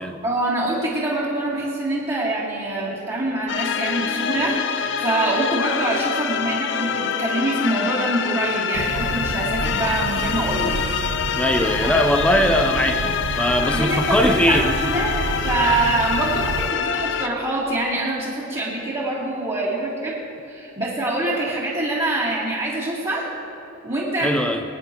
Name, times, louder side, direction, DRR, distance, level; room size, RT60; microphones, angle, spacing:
voice 1, 0.2-10.7 11.8-12.0 13.7-20.2 20.5-23.3 23.8-24.4, right 2 dB, 25° right, -10 dB, 1.8 m, -25 dB
sound 1, 3.5-17.3, left 7 dB, 50° left, 0.4 m, -25 dB
sound 2, 8.7-16.7, right 4 dB, 85° right, 0.5 m, -30 dB
voice 2, 11.3-14.7 24.2-24.6, left 1 dB, 5° left, 5 dB, 0.6 m, -20 dB
22.5 x 9.7 x 3.0 m, 2.8 s
head